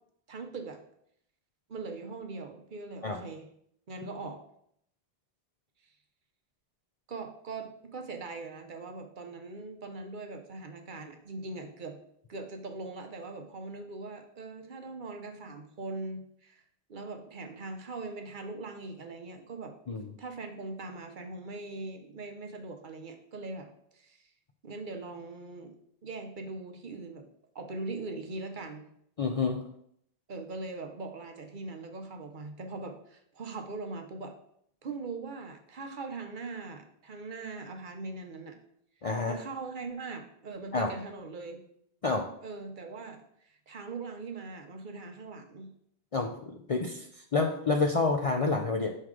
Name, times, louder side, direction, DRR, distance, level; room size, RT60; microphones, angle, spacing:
voice 1, 0.3-0.8 1.7-3.5 3.9-4.4 7.1-12.0 12.3-16.6 16.9-19.7 20.2-23.7 23.9-24.3 24.6-25.7 26.0-27.2 27.5-28.9 30.3-34.3 34.8-38.6 39.2-41.6 42.4-45.7, right 3 dB, 55° right, 5 dB, 0.8 m, -41 dB
voice 2, 29.2-29.6 39.0-39.4 40.7-40.9 42.0-42.3 46.1-47.1 47.3-49.0, left 3 dB, 45° left, 3 dB, 0.4 m, -28 dB
6.3 x 4.6 x 3.7 m, 0.69 s
omnidirectional pair, 1.1 m